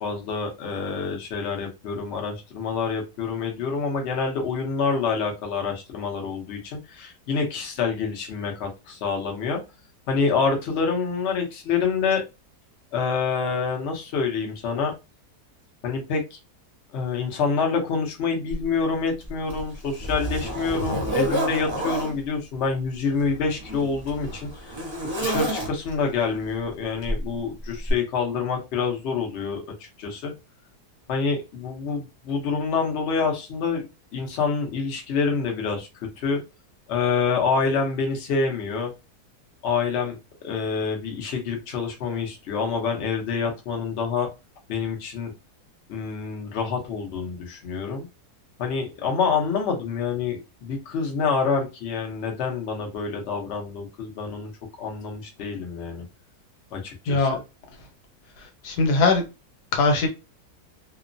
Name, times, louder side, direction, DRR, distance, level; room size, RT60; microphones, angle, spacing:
voice 1, 0.0-9.6 10.1-12.2 12.9-14.9 15.8-16.4 16.9-24.7 25.2-30.3 31.1-33.8 34.1-35.9 36.2-36.4 36.9-38.9 39.6-44.3 44.7-45.3 45.9-48.1 48.6-54.5 54.8-56.0 56.7-57.3, left 5 dB, 55° left, 0.8 m, -27 dB
Zipper (clothing), 18.5-18.6 19.2-22.1 23.1-26.1 27.0-27.3 27.9-28.0, equal, 25° right, 0.6 m, -29 dB
voice 2, 57.1-57.4 58.4-59.2 59.7-60.1, left 3 dB, 85° left, 1.4 m, -21 dB
2.9 x 2.0 x 2.5 m
omnidirectional pair, 1.7 m